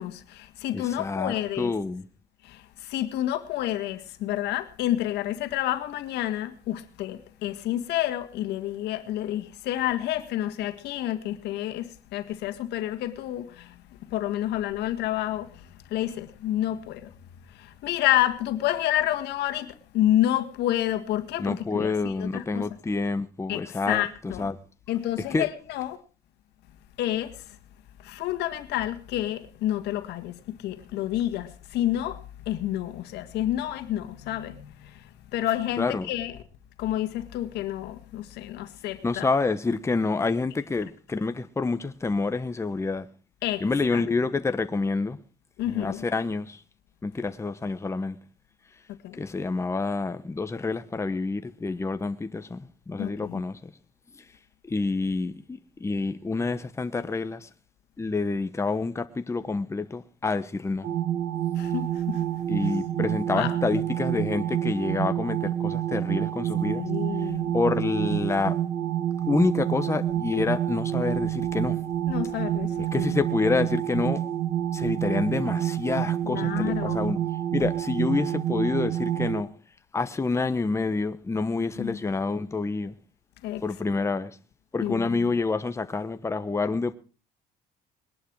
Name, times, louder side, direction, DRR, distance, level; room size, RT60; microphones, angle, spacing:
voice 1, 0.0-1.7 2.4-17.1 17.5-22.7 23.5-24.5 24.9-26.0 27.0-27.6 28.0-36.4 36.8-39.3 43.4-43.7 43.9-44.0 45.6-46.1 49.0-49.2 53.0-53.4 61.6-62.2 63.3-63.6 66.6-67.6 72.1-73.1 76.2-77.1 81.8-82.0 83.4-83.6 84.8-85.3, left 13 dB, 80° left, 1.8 m, -29 dB
voice 2, 0.7-2.0 21.4-24.0 24.4-24.6 25.3-25.5 35.8-36.1 39.0-43.0 43.6-45.2 45.7-46.6 47.0-48.2 49.2-53.6 54.7-57.5 58.0-60.9 62.5-66.8 67.5-68.5 69.3-71.8 72.9-74.2 74.7-77.2 77.5-79.5 79.9-82.9 83.6-84.4 84.7-86.9, left 3 dB, 15° left, 1.1 m, -28 dB
sound 1, 60.8-79.4, right 11 dB, 70° right, 1.8 m, -28 dB
20.5 x 11.0 x 4.7 m
cardioid pair, 110°, 17 cm